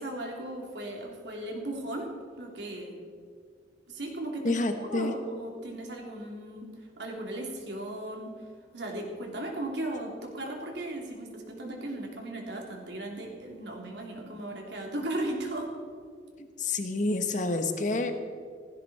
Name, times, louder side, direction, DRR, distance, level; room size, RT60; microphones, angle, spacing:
voice 1, 0.0-2.1 2.4-3.0 3.9-8.3 8.7-15.7, right 1 dB, 70° right, 0 dB, 3.2 m, -36 dB
voice 2, 4.4-5.2 16.6-18.1, left 2 dB, 45° left, 7 dB, 1.3 m, -28 dB
16.5 x 15.5 x 4.3 m, 2.1 s
head